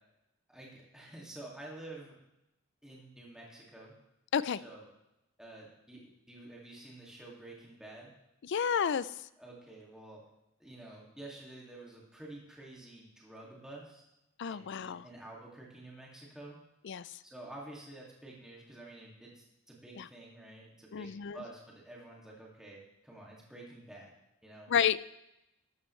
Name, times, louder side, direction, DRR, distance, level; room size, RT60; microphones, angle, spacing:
voice 1, 0.5-2.2 2.8-4.0 4.5-4.9 5.4-8.1 9.4-10.2 10.6-14.0 14.5-16.6 17.2-24.1 24.4-24.7, right 2 dB, 5° right, -4 dB, 2.3 m, -50 dB
voice 2, 8.4-9.1 14.4-15.0 16.8-17.1 20.0-20.1 20.9-21.4 24.7-25.0, left 7 dB, 60° left, 17 dB, 0.4 m, -31 dB
12.5 x 12.5 x 3.2 m, 0.88 s
head